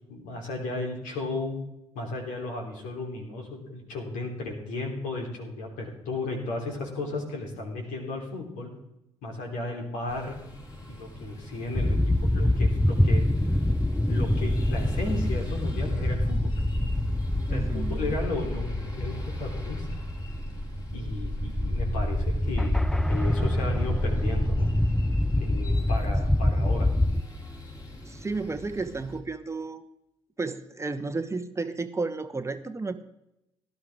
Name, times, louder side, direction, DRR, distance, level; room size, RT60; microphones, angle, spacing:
voice 1, 0.1-1.5 1.9-8.7 9.2-10.4 10.9-13.3 14.0-16.5 17.5-20.0 20.9-22.8 23.1-24.7 25.4-26.9, left 2 dB, 65° left, 1 dB, 3.4 m, -34 dB
sound 1, 10.1-29.2, left 1 dB, 25° left, 3.8 m, -44 dB
sound 2, 11.7-27.2, left 1 dB, 5° left, 0.7 m, -26 dB
voice 2, 17.5-18.2 28.0-29.8 30.4-33.0, right 3 dB, 20° right, 8 dB, 1.1 m, -32 dB
18.0 x 11.5 x 3.6 m, 0.88 s
hypercardioid pair, 50°, 14 cm